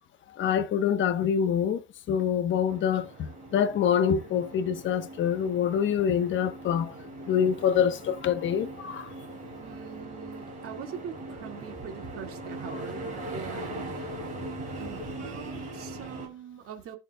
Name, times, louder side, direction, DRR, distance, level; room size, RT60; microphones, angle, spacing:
voice 1, 0.3-3.1 3.5-6.9 7.3-9.1 12.7-12.8, left 8 dB, 30° left, 1.1 m, -26 dB
sound 1, 2.7-16.3, right 1 dB, 20° right, 6.0 m, -40 dB
voice 2, 9.6-14.2 14.8-17.0, right 8 dB, 35° right, 2.1 m, -43 dB
19.0 x 6.7 x 2.3 m
cardioid pair, 160°, 39 cm